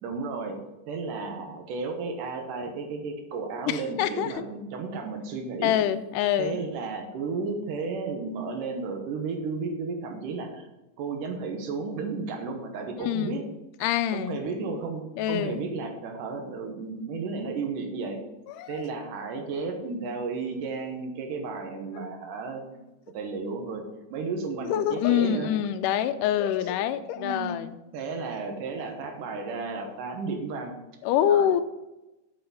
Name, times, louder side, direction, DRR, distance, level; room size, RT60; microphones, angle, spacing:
voice 1, 0.0-0.6 0.9-5.7 6.4-10.7 11.0-13.4 14.1-18.2 18.7-25.5 27.2-27.6 27.9-30.8 31.3-31.6, right 4 dB, 85° right, 4 dB, 2.7 m, -33 dB
voice 2, 3.7-4.4 5.6-6.6 13.0-13.4 13.8-14.4 15.2-15.6 18.5-18.8 22.0-22.1 24.6-27.8 31.0-31.6, left 10 dB, 90° left, 11 dB, 2.2 m, -26 dB
7.8 x 5.8 x 5.5 m, 0.99 s
omnidirectional pair, 3.7 m